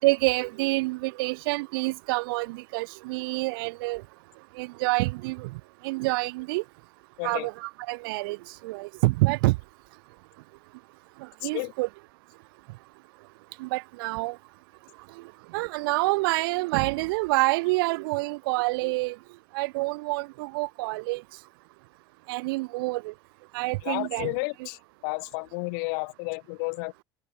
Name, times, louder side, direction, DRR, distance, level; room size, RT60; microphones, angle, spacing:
voice 1, 0.0-4.0 4.6-5.5 5.8-6.6 7.2-8.4 8.6-9.6 11.4-11.9 13.6-14.4 15.5-19.2 19.5-21.2 22.3-23.1 23.5-24.3 24.6-24.7, right 24 dB, 75° right, 3.6 m, -27 dB
voice 2, 11.4-11.7 23.8-27.0, left 35 dB, 75° left, 5.6 m, -32 dB
open air
hypercardioid pair, 70°, 12 cm